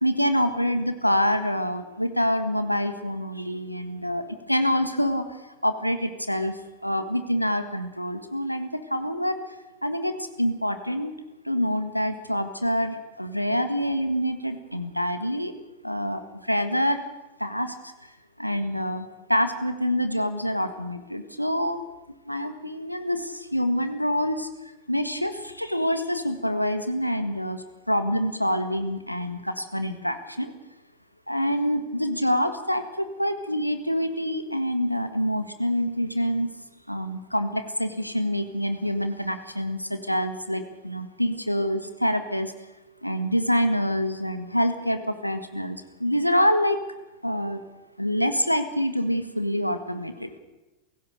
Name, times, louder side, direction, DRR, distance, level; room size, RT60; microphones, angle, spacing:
voice 1, 0.0-5.2 5.6-6.5 6.8-9.4 9.8-11.1 11.4-15.5 15.8-16.2 16.5-17.0 17.4-17.7 18.4-21.8 22.3-24.5 24.9-30.5 31.3-36.5 36.9-42.5 43.0-46.8 47.2-47.6 48.0-50.3, equal, 90° left, 9 dB, 1.7 m, -26 dB
28.5 x 16.5 x 6.6 m, 1.1 s
figure-of-eight pair, 90°, 0 cm